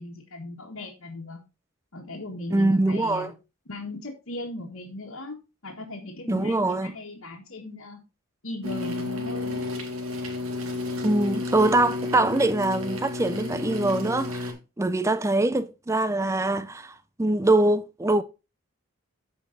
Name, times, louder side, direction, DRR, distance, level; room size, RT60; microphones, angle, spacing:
voice 1, 0.0-1.4 1.9-3.3 3.7-8.0 8.4-9.7, left 2 dB, 75° left, 1.6 m, -38 dB
voice 2, 2.5-3.3 6.3-6.9 11.0-18.2, right 2 dB, 15° right, 0.4 m, -23 dB
sound 1, 8.6-14.5, left 3 dB, 75° right, 2.1 m, -31 dB
14.0 x 5.2 x 2.7 m
head